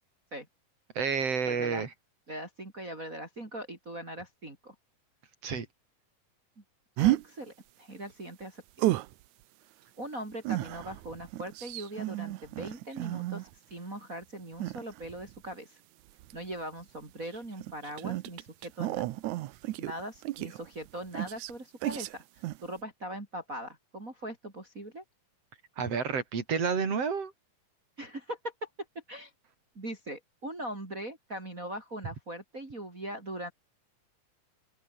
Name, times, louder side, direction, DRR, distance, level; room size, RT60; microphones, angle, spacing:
voice 1, 1.0-1.9 5.4-5.7 25.8-27.3, right 6 dB, 45° right, 4.7 m, -30 dB
voice 2, 1.5-1.8 2.3-4.7 7.0-7.5 7.8-8.6 10.0-15.8 16.3-19.0 19.8-22.2 22.6-25.0 28.0-28.5 29.1-29.3 29.8-33.5, right 1 dB, 25° right, 4.2 m, -40 dB
sound 1, 7.0-7.2 8.8-9.1 10.4-13.5 14.6-15.4 16.2-16.5 17.2-20.9 21.1-21.5 21.8-22.1 22.4-22.6, right 16 dB, 75° right, 1.9 m, -32 dB
open air
omnidirectional pair, 4.0 m